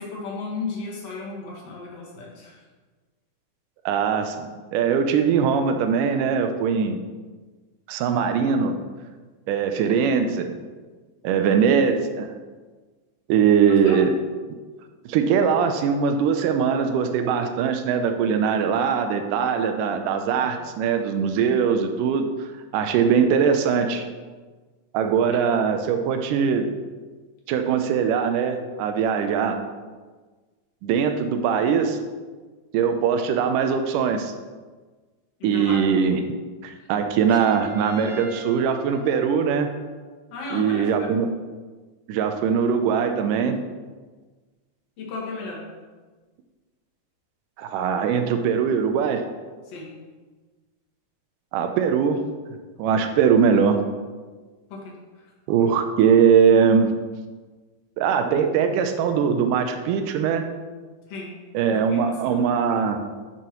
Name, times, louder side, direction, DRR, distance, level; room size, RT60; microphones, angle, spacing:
voice 1, 0.0-2.6 13.8-14.0 20.4-20.6 35.4-35.8 36.8-36.9 40.3-40.9 45.0-45.6 49.6-49.9 54.7-55.3 61.1-61.3 61.7-62.5, left 3 dB, 50° left, -3 dB, 2.2 m, -35 dB
voice 2, 3.9-7.0 7.9-8.8 9.5-10.6 11.2-12.3 13.3-14.1 15.1-22.3 22.7-24.1 24.9-26.7 27.5-29.6 30.8-32.0 32.7-34.3 35.4-36.2 36.6-39.7 40.5-41.3 42.1-43.6 47.6-49.2 51.5-52.2 52.8-53.8 55.5-56.9 58.0-60.5 61.5-63.0, right 6 dB, 90° right, 6 dB, 1.8 m, -21 dB
Trumpet, 37.3-40.0, equal, 40° right, 3.1 m, -43 dB
11.0 x 6.0 x 3.0 m, 1.4 s
omnidirectional pair, 4.4 m